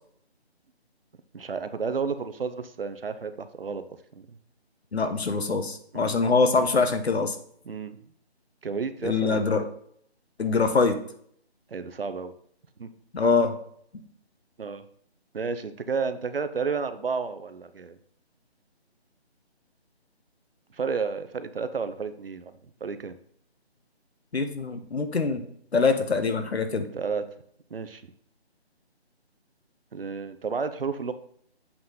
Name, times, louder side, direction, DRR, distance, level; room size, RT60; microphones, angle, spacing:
voice 1, 1.3-3.8 4.1-4.3 5.9-6.4 7.6-8.0 8.6-9.6 11.7-12.3 12.8-12.9 14.6-14.8 15.3-18.0 20.7-23.2 26.9-27.2 27.7-28.0 29.9-31.1, right 5 dB, 60° right, 11 dB, 0.7 m, -32 dB
voice 2, 4.9-7.3 9.0-9.6 10.4-11.0 13.1-13.5 24.3-25.4 25.7-26.9, left 4 dB, 75° left, 8 dB, 1.1 m, -24 dB
7.8 x 4.0 x 3.9 m, 0.64 s
figure-of-eight pair, 170°, 33 cm